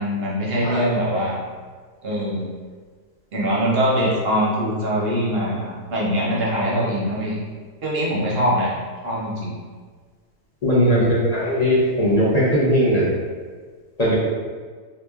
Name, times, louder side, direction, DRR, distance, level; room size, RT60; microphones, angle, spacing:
voice 1, 0.0-1.4 2.0-2.5 3.3-7.4 7.8-8.7 9.0-9.5 10.7-11.1, equal, 55° right, -5 dB, 0.7 m, -22 dB
voice 2, 0.6-0.9 10.6-13.1 14.0-14.2, equal, 40° left, -7 dB, 0.6 m, -19 dB
3.9 x 2.9 x 2.3 m, 1.5 s
omnidirectional pair, 1.6 m